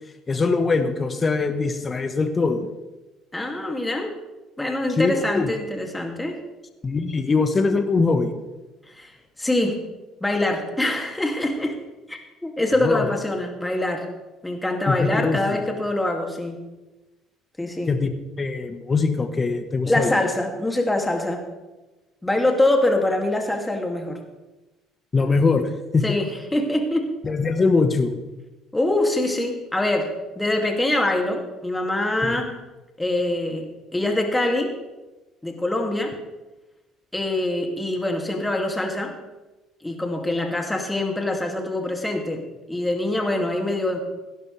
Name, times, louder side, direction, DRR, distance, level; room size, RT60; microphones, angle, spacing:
voice 1, 0.3-2.7 5.0-5.5 6.8-8.3 12.8-13.1 14.9-15.6 17.9-18.1 18.4-20.2 25.1-26.0 27.2-28.1 32.2-32.5, left 4 dB, 30° left, 8 dB, 1.4 m, -22 dB
voice 2, 3.3-4.1 4.6-6.4 8.9-9.1 9.4-9.8 10.2-11.8 12.1-14.0 14.4-16.6 17.6-17.9 19.9-21.4 22.2-24.2 26.0-27.1 28.7-32.5 33.0-33.7 33.9-34.8 35.4-36.2 37.1-39.2 39.8-44.0, left 1 dB, 10° left, 2 dB, 2.7 m, -24 dB
17.0 x 11.0 x 3.5 m, 1.1 s
hypercardioid pair, 65°, 0 cm